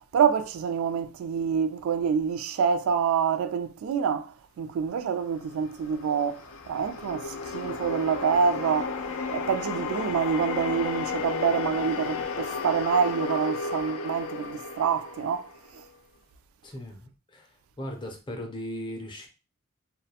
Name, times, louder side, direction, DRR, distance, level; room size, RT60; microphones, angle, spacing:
voice 1, 0.1-9.0 9.3-15.5 15.7-15.8, right 6 dB, 90° right, 0.3 m, -27 dB
sound 1, 5.5-15.9, left 4 dB, 85° left, 0.4 m, -33 dB
voice 2, 16.6-17.5 17.8-19.3, equal, 25° left, 0.5 m, -37 dB
2.3 x 2.1 x 2.7 m
head